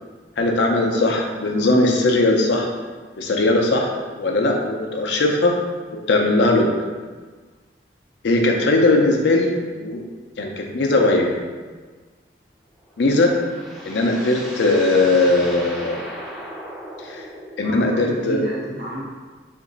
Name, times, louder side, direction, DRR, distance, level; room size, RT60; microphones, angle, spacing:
voice 1, 0.4-2.7 3.2-5.5 6.1-6.7 8.2-10.0 10.4-11.3 13.0-13.3 13.8-16.0 17.0-17.2 17.6-18.5, left 2 dB, 70° left, 1 dB, 0.5 m, -19 dB
sound 1, 12.8-18.0, equal, ahead, 0.3 m, -36 dB
voice 2, 17.6-19.0, right 1 dB, 60° right, -5 dB, 0.9 m, -31 dB
2.9 x 2.5 x 3.8 m, 1.4 s
head